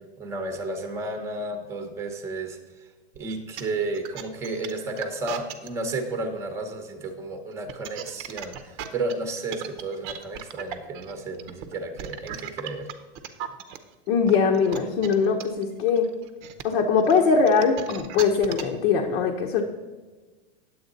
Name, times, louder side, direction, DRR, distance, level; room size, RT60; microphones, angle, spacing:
voice 1, 0.2-2.6 3.2-12.9, right 2 dB, 10° right, 5 dB, 0.9 m, -32 dB
sound 1, 3.2-5.7 7.5-13.8 14.3-18.8, right 10 dB, 35° right, 0.7 m, -37 dB
voice 2, 14.1-16.1 16.6-19.6, left 5 dB, 65° left, 0 dB, 1.2 m, -21 dB
9.3 x 8.0 x 4.0 m, 1.3 s
supercardioid pair, 150°, 33 cm